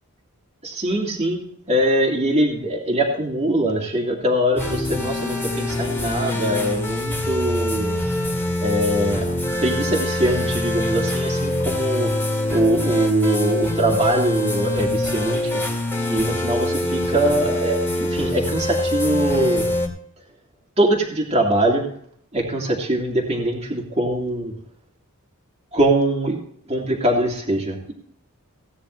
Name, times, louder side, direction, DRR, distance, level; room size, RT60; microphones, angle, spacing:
voice 1, 0.6-1.4 1.7-8.0 8.6-12.1 12.5-15.6 16.1-19.7 20.8-21.8 22.3-24.5 25.7-26.4 26.7-27.9, right 1 dB, 30° right, 0 dB, 2.5 m, -22 dB
sound 1, 4.6-19.9, left 1 dB, 10° left, 2.4 m, -24 dB
17.0 x 9.8 x 3.2 m, 0.65 s
head